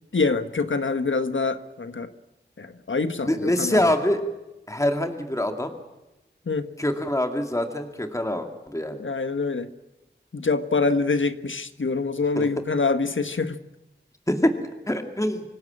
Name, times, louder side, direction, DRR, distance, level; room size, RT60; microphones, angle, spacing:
voice 1, 0.1-2.1 2.6-3.8 6.5-6.7 9.0-9.7 10.3-13.6, left 4 dB, 80° left, 10 dB, 1.3 m, -25 dB
voice 2, 3.2-4.2 4.7-5.7 6.8-9.0 12.4-12.5 14.3-14.5 14.9-15.4, left 1 dB, 15° left, 5 dB, 2.3 m, -24 dB
25.5 x 16.5 x 8.8 m, 0.98 s
wide cardioid pair, 55°, 20 cm